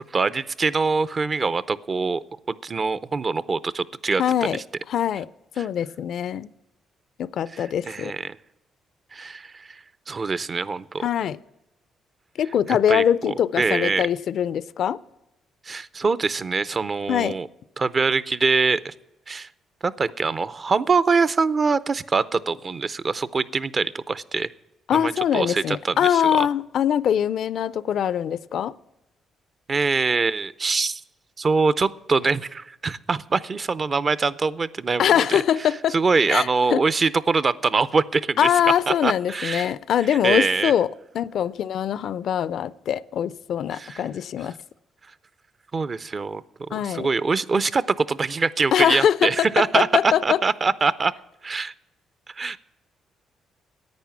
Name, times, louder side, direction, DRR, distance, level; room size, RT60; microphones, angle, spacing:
voice 1, 0.1-4.5 7.5-8.4 9.1-9.8 10.1-11.0 12.7-14.0 15.7-17.5 17.8-18.9 19.3-19.5 19.8-24.5 24.9-26.5 29.7-31.0 31.4-35.4 35.9-38.5 38.9-39.7 40.2-40.7 43.7-44.0 45.7-51.1 51.4-51.7 52.3-52.6, right 4 dB, 35° right, 0.5 m, -24 dB
voice 2, 4.2-4.6 4.9-5.3 5.6-6.5 7.2-8.1 11.0-11.4 12.4-15.0 17.1-17.4 24.9-28.7 35.0-36.0 36.3-36.8 38.4-40.9 41.1-44.6 46.7-47.1 48.7-50.4, left 9 dB, 70° left, 0.4 m, -23 dB
10.5 x 8.8 x 7.2 m
cardioid pair, 90°, 0 cm